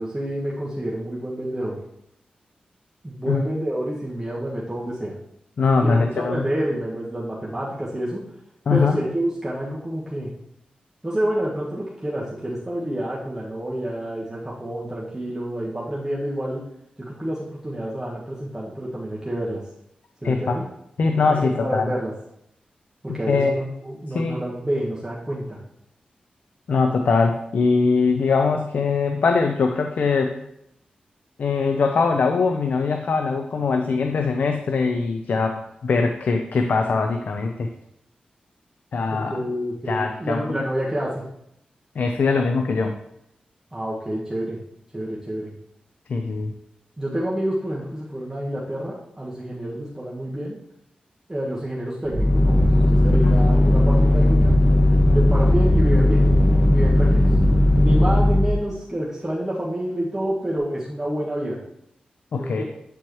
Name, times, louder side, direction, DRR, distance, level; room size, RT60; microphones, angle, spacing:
voice 1, 0.0-1.8 3.0-5.1 5.8-8.2 8.7-10.3 11.0-16.6 17.0-19.6 20.2-20.6 21.3-22.1 23.0-25.6 39.1-41.2 43.7-44.6 44.9-45.5 47.0-50.6 51.3-54.5 55.1-56.2 56.7-57.3 57.8-61.6 62.4-62.6, right 1 dB, 15° right, -6 dB, 1.4 m, -28 dB
voice 2, 5.6-6.4 8.7-9.0 20.2-20.6 21.0-21.9 23.1-23.6 24.1-24.4 26.7-30.4 31.4-37.7 38.9-39.4 39.9-40.4 42.0-42.9 46.1-46.5 53.1-53.4 62.3-62.6, left 4 dB, 70° left, 5 dB, 0.5 m, -22 dB
sound 1, 52.1-58.6, left 1 dB, 20° left, 1.7 m, -17 dB
8.5 x 4.6 x 3.1 m, 0.78 s
cardioid pair, 55°, 3 cm